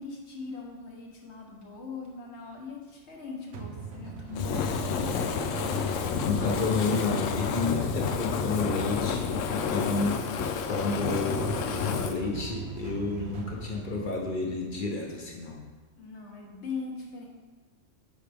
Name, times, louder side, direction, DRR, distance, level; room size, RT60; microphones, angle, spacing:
voice 1, 0.0-4.7 16.0-17.3, left 4 dB, 65° left, -1 dB, 1.5 m, -40 dB
sound 1, 3.5-15.4, right 5 dB, 65° right, 0.9 m, -41 dB
Fire, 4.3-12.2, left 6 dB, 90° left, 0.9 m, -30 dB
voice 2, 5.3-10.3 10.6-15.7, left 3 dB, 45° left, 0 dB, 1.0 m, -31 dB
8.4 x 4.9 x 3.4 m, 1.3 s
omnidirectional pair, 1.3 m